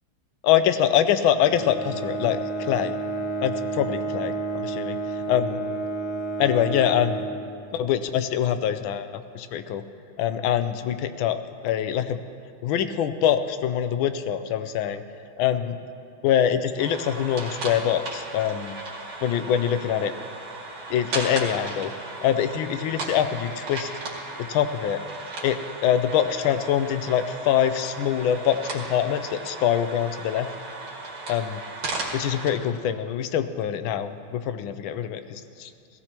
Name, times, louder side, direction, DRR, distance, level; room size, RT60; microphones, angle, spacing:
voice 1, 0.4-2.9 3.4-3.5 3.8-5.6 6.4-7.2 7.7-9.8 10.2-11.4 11.6-12.2 12.6-15.0 15.4-15.8 16.2-18.7 19.2-20.1 20.9-21.9 22.2-23.9 24.4-25.0 25.4-30.5 31.3-31.6 32.1-35.7, left 9 dB, 75° left, 10 dB, 1.3 m, -24 dB
Bowed string instrument, 1.3-8.0, right 3 dB, 60° left, 1.8 m, -31 dB
sound 1, 16.8-32.5, right 2 dB, 80° right, 2.9 m, -36 dB
17.5 x 15.5 x 3.0 m, 2.4 s
omnidirectional pair, 2.4 m